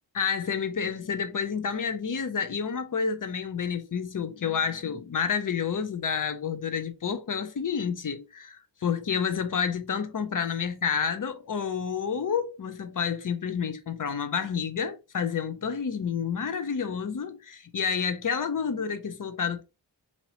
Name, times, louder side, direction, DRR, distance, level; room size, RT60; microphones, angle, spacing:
voice 1, 0.1-19.6, left 6 dB, 45° left, 0.6 m, -29 dB
2.9 x 2.9 x 4.0 m
wide cardioid pair, 95°, 43 cm